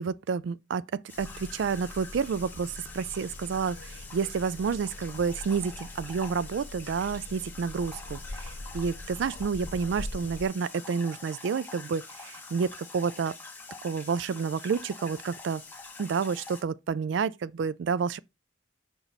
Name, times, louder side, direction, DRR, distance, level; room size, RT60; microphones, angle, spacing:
voice 1, 0.0-13.3 13.8-15.6 16.0-18.2, right 6 dB, 75° right, 0.3 m, -30 dB
sound 1, 1.1-10.5, left 2 dB, 75° left, 0.8 m, -43 dB
sound 2, 1.1-16.6, left 4 dB, 10° left, 0.9 m, -46 dB
5.3 x 4.0 x 4.5 m
head